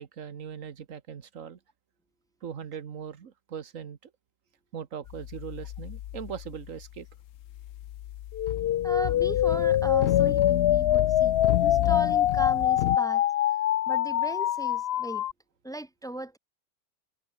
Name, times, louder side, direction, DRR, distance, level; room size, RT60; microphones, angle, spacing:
voice 1, 0.0-1.6 2.4-4.1 4.7-7.1, right 8 dB, 85° right, 1.6 m, -40 dB
sound 1, 5.1-7.0 7.4-13.0, left 13 dB, 80° left, 1.0 m, -32 dB
sound 2, 8.3-15.3, left 12 dB, 60° left, 0.7 m, -24 dB
voice 2, 8.8-13.2 13.9-15.2 15.6-16.4, right 2 dB, 5° left, 1.8 m, -37 dB
omnidirectional pair, 1.3 m